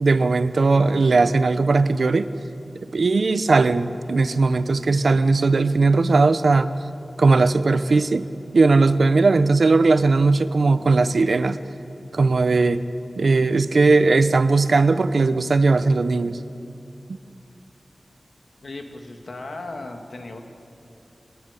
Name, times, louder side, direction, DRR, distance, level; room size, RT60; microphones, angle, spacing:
voice 1, 0.0-2.3 2.9-6.7 7.2-8.3 8.5-11.6 12.1-12.8 13.2-16.4, right 3 dB, 75° right, 12 dB, 0.9 m, -18 dB
voice 2, 18.6-20.4, left 2 dB, 70° left, 4 dB, 2.4 m, -36 dB
23.5 x 20.5 x 8.4 m, 2.8 s
wide cardioid pair, 90°, 0 cm